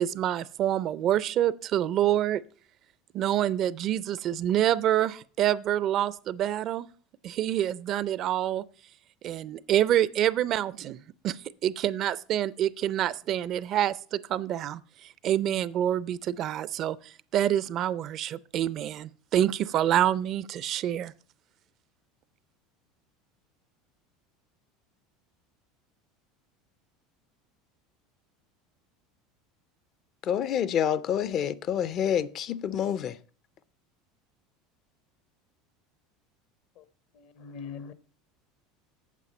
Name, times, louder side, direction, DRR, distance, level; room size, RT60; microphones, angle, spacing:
voice 1, 0.0-2.4 3.1-6.9 7.2-8.6 9.2-21.1, right 11 dB, 45° right, 0.4 m, -27 dB
voice 2, 30.2-33.2, left 9 dB, 45° left, 0.4 m, -28 dB
voice 3, 37.1-37.9, left 6 dB, 60° left, 0.8 m, -42 dB
8.4 x 7.2 x 5.3 m
supercardioid pair, 115°, 0 cm